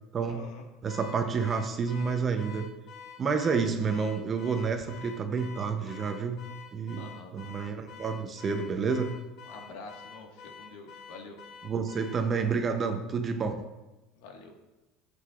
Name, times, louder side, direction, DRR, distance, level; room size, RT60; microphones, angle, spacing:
voice 1, 0.3-0.7 7.0-7.4 9.4-11.4 14.2-14.5, left 3 dB, 75° left, 2 dB, 1.5 m, -46 dB
voice 2, 0.8-2.7 3.2-6.4 6.7-7.1 7.3-9.1 11.6-13.6, right 5 dB, 25° right, 6 dB, 0.6 m, -29 dB
Car / Alarm, 0.9-12.3, left 6 dB, 40° left, 0.8 m, -48 dB
11.0 x 7.8 x 2.4 m, 1.0 s
cardioid pair, 150°, 0 cm